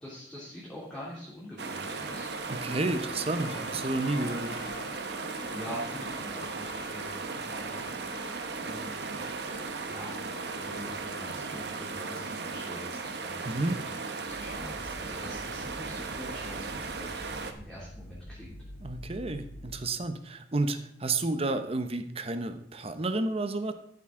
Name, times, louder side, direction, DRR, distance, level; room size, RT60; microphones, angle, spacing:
voice 1, 0.0-2.3 3.5-3.9 5.2-8.3 8.6-9.2 9.6-13.9 14.3-17.2 17.5-18.6, equal, 5° left, -8 dB, 2.8 m, -45 dB
sound 1, 1.6-17.5, right 4 dB, 65° right, 1.0 m, -37 dB
sound 2, 1.9-11.8, left 3 dB, 90° left, 2.1 m, -47 dB
voice 2, 2.5-4.6 13.4-13.7 18.8-23.7, right 2 dB, 35° right, 9 dB, 0.9 m, -31 dB
sound 3, 14.2-20.0, equal, 65° left, 2.5 m, -46 dB
13.5 x 7.6 x 3.8 m, 0.71 s
head